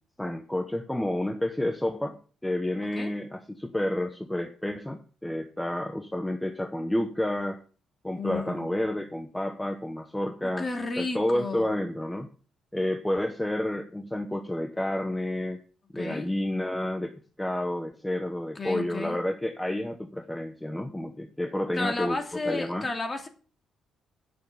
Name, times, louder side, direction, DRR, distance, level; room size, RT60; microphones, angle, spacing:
voice 1, 0.2-7.6 8.0-10.7 11.0-12.3 12.7-15.6 15.9-22.2 22.4-22.9, left 1 dB, 5° left, 7 dB, 1.0 m, -30 dB
voice 2, 8.2-8.9 10.4-11.7 15.9-16.3 18.6-19.2 21.7-23.3, left 3 dB, 30° left, 5 dB, 2.7 m, -33 dB
9.2 x 6.4 x 8.5 m, 0.39 s
cardioid pair, 90°, 0 cm